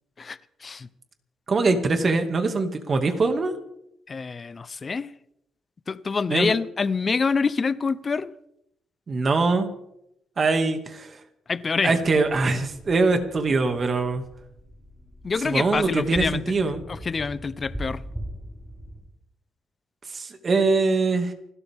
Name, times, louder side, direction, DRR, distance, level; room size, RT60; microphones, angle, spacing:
voice 1, 0.2-0.9 4.1-5.1 5.9-8.3 11.5-12.0 15.2-16.4 16.9-18.0, left 4 dB, 35° left, 16 dB, 0.8 m, -26 dB
voice 2, 1.5-3.5 6.3-6.5 9.1-9.7 10.4-11.2 11.8-14.2 15.4-16.8 20.0-21.3, right 3 dB, 40° right, 6 dB, 2.3 m, -23 dB
sound 1, 12.0-19.0, equal, 5° right, 6.6 m, -40 dB
29.0 x 12.5 x 3.7 m, 0.79 s
cardioid pair, 90°, 0 cm